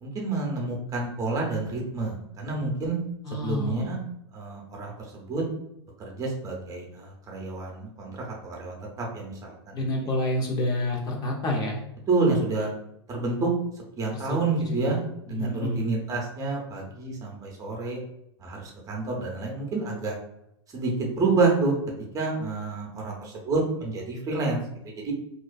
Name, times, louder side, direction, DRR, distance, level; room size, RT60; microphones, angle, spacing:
voice 1, 0.0-2.9 3.3-4.0 4.3-5.4 6.0-10.1 12.1-12.7 13.1-13.5 14.0-18.0 18.4-20.1 20.7-21.7 22.1-24.6 25.0-25.1, right 3 dB, 25° right, -1 dB, 0.7 m, -29 dB
voice 2, 3.2-4.0 9.7-11.8 14.1-14.4 14.7-15.0 15.3-15.9, left 1 dB, 25° left, 0 dB, 0.5 m, -28 dB
2.4 x 2.3 x 2.2 m, 0.78 s
hypercardioid pair, 105°, 14 cm